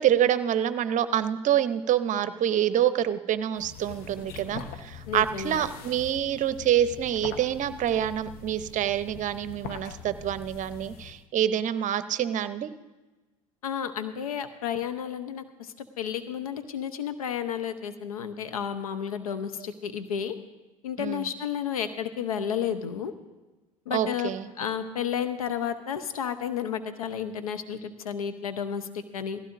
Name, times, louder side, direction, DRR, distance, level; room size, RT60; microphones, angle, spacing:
voice 1, 0.0-12.7 21.0-21.3 23.9-24.5, right 10 dB, 45° right, 13 dB, 0.7 m, -26 dB
sound 1, 3.6-11.3, left 7 dB, 60° left, 0.9 m, -43 dB
voice 2, 5.1-5.6 13.6-20.3 20.8-23.1 23.9-24.3 24.6-29.4, left 8 dB, 85° left, 10 dB, 0.8 m, -32 dB
17.5 x 15.5 x 2.6 m, 1.2 s
hypercardioid pair, 70°, 18 cm